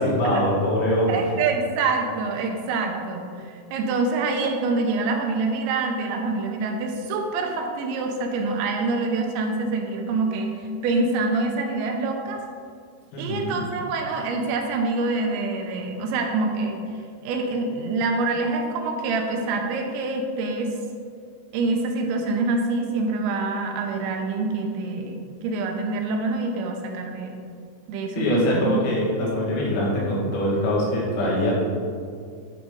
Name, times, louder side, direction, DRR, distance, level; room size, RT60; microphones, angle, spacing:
voice 1, 0.0-1.2 13.1-13.6 28.2-31.5, equal, 85° left, -5 dB, 4.5 m, -23 dB
voice 2, 1.1-10.5 10.8-12.4 13.2-16.8 17.2-20.7 21.5-27.4 27.9-28.8 29.5-29.6, right 3 dB, 85° right, 3 dB, 3.1 m, -26 dB
9.9 x 4.9 x 5.3 m, 2.2 s
omnidirectional pair, 5.2 m